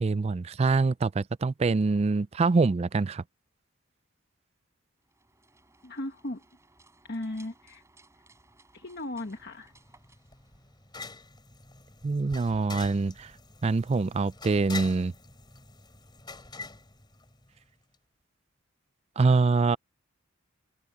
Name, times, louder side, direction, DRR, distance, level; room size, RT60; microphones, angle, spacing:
voice 1, 0.0-3.2 12.0-13.3 13.6-15.1 19.2-19.8, right 4 dB, 30° right, 0.3 m, -25 dB
sound 1, 5.0-11.2, right 2 dB, 15° right, 7.8 m, -61 dB
voice 2, 5.8-6.4 7.1-7.8 8.7-9.7, left 1 dB, 50° left, 1.4 m, -36 dB
sound 2, 9.4-17.7, left 3 dB, 20° left, 4.5 m, -45 dB
head